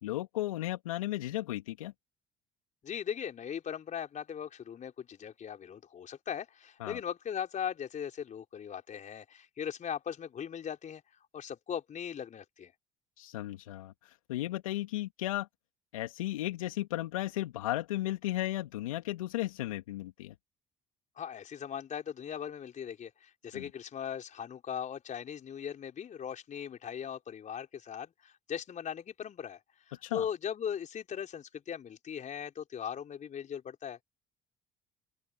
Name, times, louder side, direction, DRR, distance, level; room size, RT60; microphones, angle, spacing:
voice 1, 0.0-1.9 6.8-7.0 13.2-15.5 15.9-20.3 23.5-23.7 30.0-30.3, left 15 dB, 80° left, 2.1 m, -35 dB
voice 2, 2.8-11.0 11.3-12.7 21.2-29.6 29.9-34.0, left 8 dB, 45° left, 4.2 m, -39 dB
open air
hypercardioid pair, 55°, 17 cm